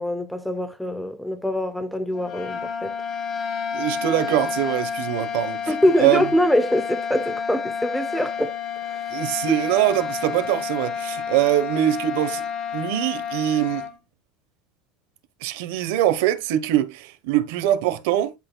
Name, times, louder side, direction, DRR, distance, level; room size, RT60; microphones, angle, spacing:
voice 1, 0.0-2.9 5.7-8.5 8.9-9.0, left 1 dB, ahead, 0.4 m, -23 dB
sound 1, 2.1-14.0, left 6 dB, 30° left, 1.1 m, -30 dB
voice 2, 3.7-6.2 9.1-12.4 12.7-13.9 15.4-18.3, right 12 dB, 70° right, 1.0 m, -23 dB
10.5 x 4.3 x 2.2 m
cardioid pair, 165°, 0 cm